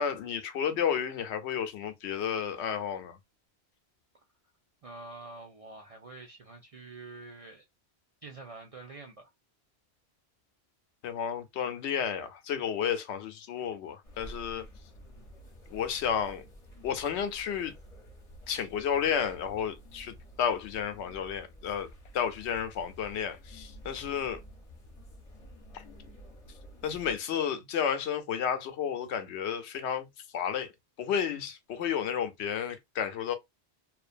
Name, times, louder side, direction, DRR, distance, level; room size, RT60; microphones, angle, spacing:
voice 1, 0.0-3.2 11.0-14.7 15.7-16.4 16.8-17.8 18.5-24.4 25.7-25.8 26.8-30.7 31.0-33.3, left 8 dB, 85° left, 0.9 m, -32 dB
voice 2, 4.8-7.6 8.2-9.3, right 3 dB, 55° right, 0.4 m, -46 dB
sound 1, 14.0-27.2, equal, 35° left, 0.8 m, -51 dB
2.5 x 2.2 x 2.5 m
omnidirectional pair, 1.1 m